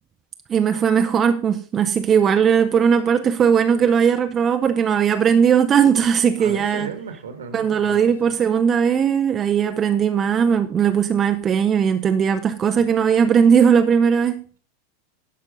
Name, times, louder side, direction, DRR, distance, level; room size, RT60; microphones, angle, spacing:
voice 1, 0.5-6.9 7.5-14.4, right 7 dB, 25° right, 0.7 m, -18 dB
voice 2, 6.4-8.3, right 5 dB, 70° right, 1.7 m, -35 dB
11.5 x 5.5 x 5.2 m
figure-of-eight pair, 85°, 0 cm